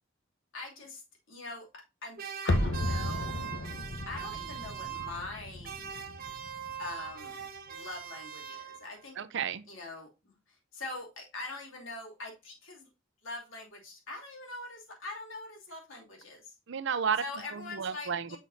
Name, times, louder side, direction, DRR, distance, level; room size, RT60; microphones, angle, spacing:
voice 1, 0.5-1.0 1.3-2.2 2.4-3.4 4.1-5.7 6.8-9.2 9.7-12.9 13.2-16.5 17.2-18.4, left 2 dB, 85° left, 2.7 m, -43 dB
sound 1, 2.2-5.4 5.6-9.0, right 9 dB, 50° right, 1.0 m, -41 dB
sound 2, 2.5-7.4 7.7-7.8, left 1 dB, 65° left, 0.8 m, -34 dB
voice 2, 9.2-9.6 16.7-17.2 17.5-18.4, right 6 dB, 65° right, 0.6 m, -32 dB
6.1 x 6.0 x 2.7 m
head